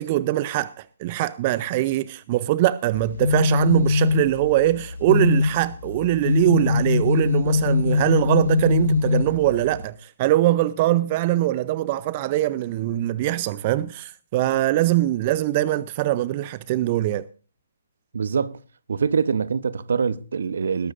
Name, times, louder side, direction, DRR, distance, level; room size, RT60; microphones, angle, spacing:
voice 1, 0.0-17.3, right 15 dB, 35° right, 0.6 m, -22 dB
sound 1, 2.9-9.8, left 4 dB, 75° left, 5.2 m, -22 dB
voice 2, 18.1-18.6 18.9-20.9, right 6 dB, 65° right, 0.9 m, -24 dB
21.0 x 12.5 x 2.6 m
figure-of-eight pair, 140°, 0 cm